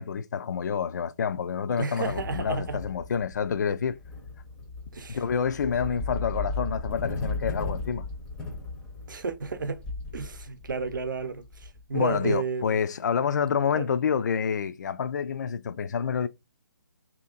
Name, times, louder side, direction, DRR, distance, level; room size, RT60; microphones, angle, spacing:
voice 1, 0.0-4.0 5.1-8.0 11.9-16.3, left 7 dB, 60° left, 0.4 m, -28 dB
voice 2, 1.8-2.8 4.9-5.2 9.1-9.8 10.1-12.8 13.7-13.9, right 4 dB, 70° right, 0.6 m, -32 dB
sound 1, 2.1-12.3, left 3 dB, 5° left, 0.5 m, -36 dB
2.9 x 2.5 x 3.7 m
hypercardioid pair, 155°, 11 cm